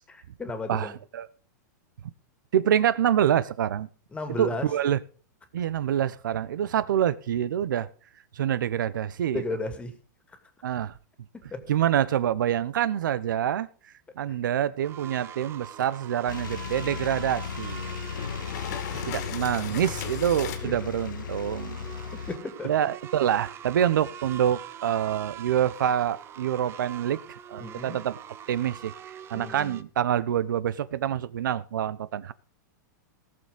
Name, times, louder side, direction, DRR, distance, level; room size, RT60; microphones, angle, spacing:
voice 1, 0.1-1.0 4.1-4.7 9.3-10.0 11.3-11.6 20.6-20.7 22.3-22.7 27.6-28.0 29.3-29.8, left 2 dB, 10° left, 2.3 m, -34 dB
voice 2, 0.7-1.3 2.5-3.9 4.4-5.0 5.5-7.9 8.3-9.4 10.6-10.9 11.7-13.7 14.2-17.9 19.1-21.8 22.6-28.2 28.5-28.9 29.3-32.3, right 10 dB, 85° right, 1.1 m, -26 dB
sound 1, 14.8-29.8, right 9 dB, 25° right, 0.9 m, -43 dB
sound 2, 16.3-22.4, left 8 dB, 85° left, 0.7 m, -36 dB
sound 3, 18.1-20.6, left 9 dB, 60° left, 2.2 m, -37 dB
18.5 x 6.9 x 5.3 m
supercardioid pair, 145°, 10 cm